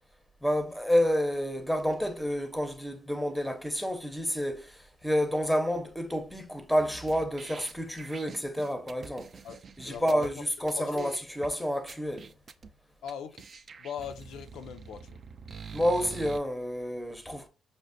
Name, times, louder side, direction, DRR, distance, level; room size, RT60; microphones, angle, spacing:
voice 1, 0.4-9.3 9.8-12.3 15.7-17.5, equal, ahead, 0.6 m, -29 dB
sound 1, 6.8-10.3 10.7-10.8 11.0-11.5 11.9-12.7 13.1-13.2 13.4-16.4, right 5 dB, 45° right, 0.3 m, -46 dB
voice 2, 9.4-10.3 10.8-11.1 13.0-13.4 13.8-15.2 16.1-16.2, left 8 dB, 80° left, 0.3 m, -40 dB
5.1 x 2.0 x 2.5 m
cardioid pair, 90°, 0 cm